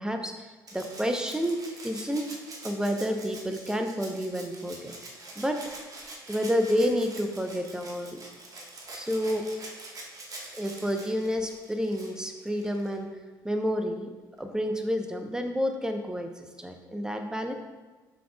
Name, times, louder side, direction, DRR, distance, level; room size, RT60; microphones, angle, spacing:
voice 1, 0.0-2.3 2.6-5.6 6.3-8.2 8.9-9.5 10.5-13.1 13.4-14.1 14.4-17.5, equal, 5° right, 5 dB, 0.9 m, -30 dB
Rattle (instrument), 0.7-13.0 14.4-14.5, right 2 dB, 35° right, 1.5 m, -45 dB
9.3 x 6.1 x 2.4 m, 1.3 s
figure-of-eight pair, 50°, 11 cm